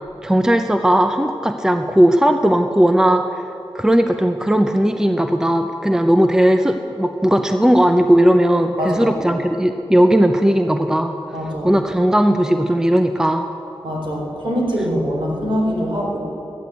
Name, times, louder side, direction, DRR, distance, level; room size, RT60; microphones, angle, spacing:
voice 1, 0.2-3.4 3.7-11.1 11.6-13.5, right 1 dB, 5° right, 7 dB, 0.7 m, -16 dB
voice 2, 8.8-9.1 11.3-11.7 13.8-16.2, equal, 55° right, -2 dB, 4.2 m, -23 dB
13.0 x 10.5 x 8.0 m, 3.0 s
cardioid pair, 60°, 10 cm